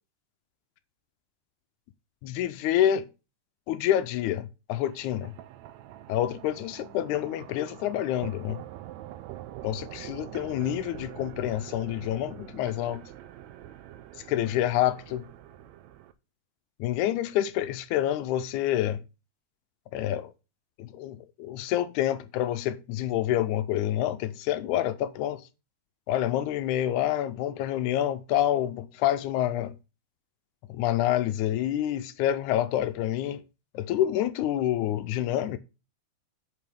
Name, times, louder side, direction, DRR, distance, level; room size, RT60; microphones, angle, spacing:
voice 1, 2.2-3.1 3.7-5.3 6.1-8.6 9.6-13.0 14.3-15.3 16.8-19.0 19.9-20.3 20.8-25.4 26.1-29.7 30.7-33.4 33.7-35.6, left 12 dB, 85° left, 2.0 m, -27 dB
sound 1, 4.7-16.1, right 13 dB, 75° right, 1.8 m, -45 dB
9.4 x 6.0 x 3.6 m
omnidirectional pair, 3.5 m